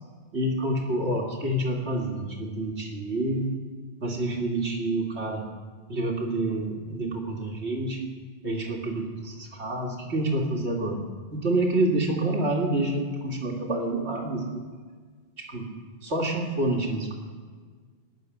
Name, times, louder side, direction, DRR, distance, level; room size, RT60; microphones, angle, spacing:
voice 1, 0.3-3.6 4.0-5.5 5.9-8.1 8.4-11.0 11.3-14.6 15.4-15.7 16.0-17.1, right 1 dB, 80° right, 0 dB, 2.4 m, -28 dB
16.5 x 6.7 x 9.6 m, 1.5 s
omnidirectional pair, 1.1 m